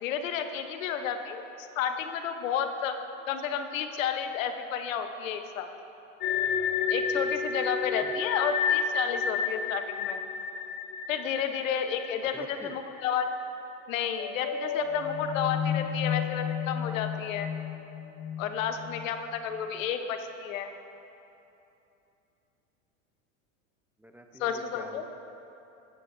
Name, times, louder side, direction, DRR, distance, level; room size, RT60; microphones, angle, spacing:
voice 1, 0.0-2.9 3.3-5.7 6.9-10.2 11.1-13.3 13.9-17.5 18.4-20.7 24.4-25.1, left 8 dB, 80° left, 7 dB, 1.0 m, -31 dB
sound 1, 6.2-13.1 13.3-13.5 14.0-19.3, left 6 dB, 30° left, 0.9 m, -31 dB
voice 2, 12.2-12.7 24.0-25.1, right 1 dB, 5° right, 4 dB, 0.7 m, -47 dB
14.5 x 14.0 x 2.7 m, 2.9 s
hypercardioid pair, 105°, 39 cm